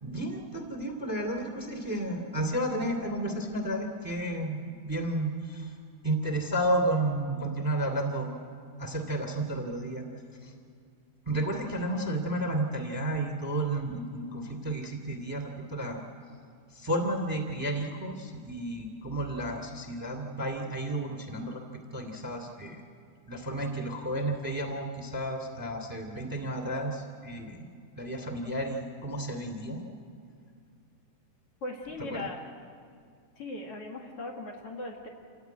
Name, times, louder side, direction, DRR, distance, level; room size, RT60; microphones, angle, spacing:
voice 1, 0.0-5.8 6.0-8.3 8.8-10.0 10.4-10.5 11.3-16.0 16.7-21.6 21.9-22.8 23.3-27.6 27.9-29.8 32.0-32.3, right 1 dB, 5° right, 5 dB, 2.2 m, -32 dB
voice 2, 31.6-32.4 33.4-35.1, left 2 dB, 50° left, -1 dB, 2.5 m, -38 dB
28.5 x 16.0 x 9.4 m, 2.3 s
omnidirectional pair, 3.7 m